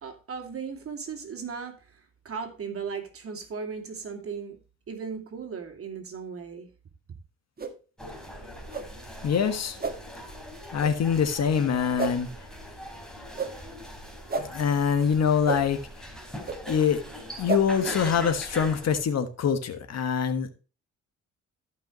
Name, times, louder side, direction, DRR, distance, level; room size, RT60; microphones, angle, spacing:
voice 1, 0.0-4.6 4.9-6.7 7.1-7.2, right 6 dB, 50° right, 2.7 m, -37 dB
sound 1, 7.6-7.7 8.7-8.8 9.8-9.9 10.8-10.9 12.0-12.1 13.3-13.5 14.3-14.4 15.4-15.6 16.4-16.6 17.4-17.6, right 4 dB, 30° right, 1.8 m, -29 dB
sound 2, 8.0-19.0, left 1 dB, ahead, 3.3 m, -41 dB
voice 2, 9.2-9.8 10.7-12.3 14.4-15.8 16.7-17.0 17.4-20.5, left 7 dB, 60° left, 1.5 m, -24 dB
14.5 x 5.7 x 3.1 m
cardioid pair, 90°, 30 cm